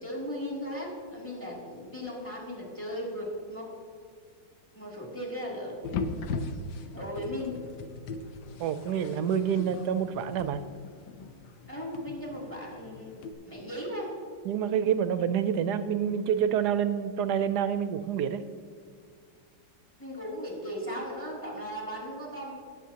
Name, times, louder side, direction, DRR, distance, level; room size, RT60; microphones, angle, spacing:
voice 1, 0.0-3.7 4.7-5.8 6.9-7.6 11.7-14.1 20.0-22.5, equal, 5° left, -3 dB, 2.5 m, -37 dB
sound 1, 5.8-13.3, left 4 dB, 85° left, 1.5 m, -39 dB
voice 2, 8.6-10.6 14.5-18.4, right 8 dB, 75° right, 11 dB, 1.1 m, -27 dB
17.5 x 7.6 x 2.9 m, 2.1 s
omnidirectional pair, 2.0 m